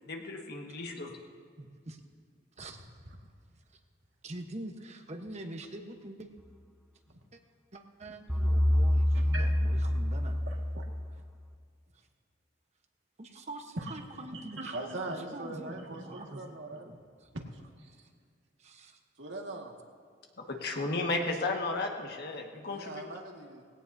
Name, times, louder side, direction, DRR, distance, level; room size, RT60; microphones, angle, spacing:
voice 1, 0.0-1.2 20.4-23.1, left 2 dB, 60° left, 1 dB, 1.7 m, -34 dB
voice 2, 1.6-2.0 2.6-2.9 4.2-6.3 7.3-7.4 7.7-10.4 11.9-12.1 13.2-17.3 17.9-18.0 18.6-19.0, right 1 dB, 40° right, 5 dB, 1.1 m, -45 dB
sound 1, 8.3-11.4, left 1 dB, ahead, 0.6 m, -27 dB
voice 3, 9.1-9.5 9.8-10.0 10.5-10.8 13.8-13.9 14.3-16.9 17.3-17.4 17.8-17.9 19.2-19.7 22.7-23.6, right 2 dB, 85° right, 0 dB, 1.9 m, -41 dB
19.5 x 17.0 x 2.7 m, 2.1 s
head